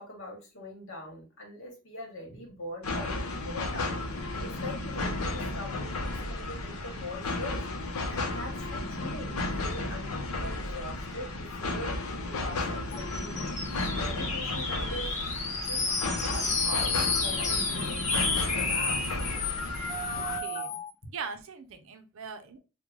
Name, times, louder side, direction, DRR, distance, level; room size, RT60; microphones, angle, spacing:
voice 1, 0.0-4.0 4.4-7.6 8.1-13.4 13.9-19.0, left 1 dB, 60° left, 1 dB, 1.2 m, -42 dB
sound 1, 2.8-20.4, left 2 dB, 80° left, 0.7 m, -33 dB
sound 2, 12.9-20.9, left 3 dB, 35° left, 0.7 m, -31 dB
voice 2, 20.1-22.6, right 5 dB, 65° right, 8 dB, 0.5 m, -42 dB
3.1 x 2.2 x 3.6 m, 0.32 s
head